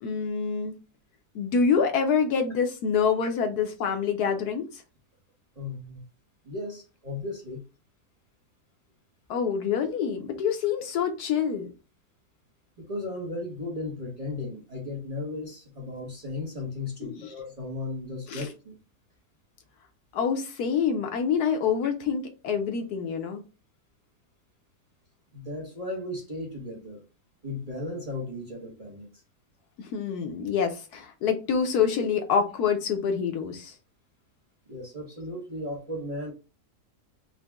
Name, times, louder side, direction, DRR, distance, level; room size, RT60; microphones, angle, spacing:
voice 1, 0.0-0.7 1.3-4.8 9.3-11.7 17.0-17.3 18.3-18.5 20.1-23.4 29.8-33.7, left 6 dB, 70° left, 1.1 m, -26 dB
voice 2, 5.5-6.0 6.4-7.6 12.8-18.8 25.3-27.0 27.4-29.1 34.7-36.3, left 2 dB, 30° right, 0.8 m, -35 dB
4.0 x 2.1 x 3.3 m
omnidirectional pair, 1.8 m